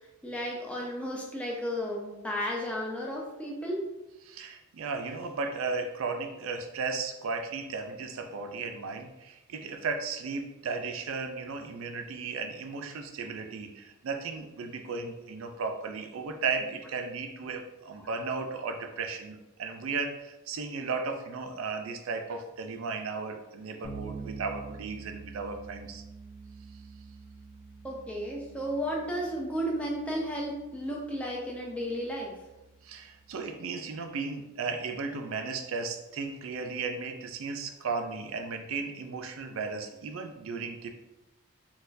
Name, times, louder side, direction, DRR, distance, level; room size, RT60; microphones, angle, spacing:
voice 1, 0.2-3.8 18.0-18.1 27.8-32.4, equal, 5° left, -2 dB, 0.5 m, -33 dB
voice 2, 4.3-26.0 32.8-40.9, right 4 dB, 65° right, 5 dB, 0.4 m, -35 dB
Bass guitar, 23.8-33.5, right 4 dB, 75° left, 0.7 m, -47 dB
4.1 x 2.3 x 2.6 m, 1.0 s
head